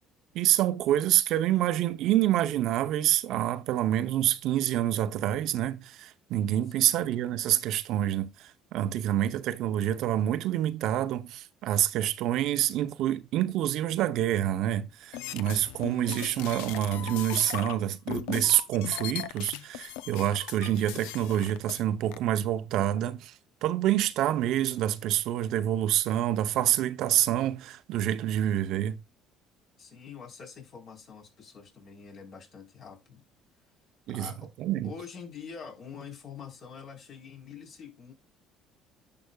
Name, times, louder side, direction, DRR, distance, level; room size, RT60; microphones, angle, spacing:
voice 1, 0.3-23.3 23.6-29.0 34.1-34.3 34.6-34.9, right 12 dB, 70° right, 0.7 m, -27 dB
sound 1, 15.1-17.8 18.1-21.8 22.1-22.2, left 13 dB, 85° left, 0.6 m, -38 dB
voice 2, 29.8-33.2 34.1-34.5 34.8-38.1, left 6 dB, 55° left, 4.1 m, -45 dB
10.5 x 5.8 x 2.3 m
supercardioid pair, 80°, 0 cm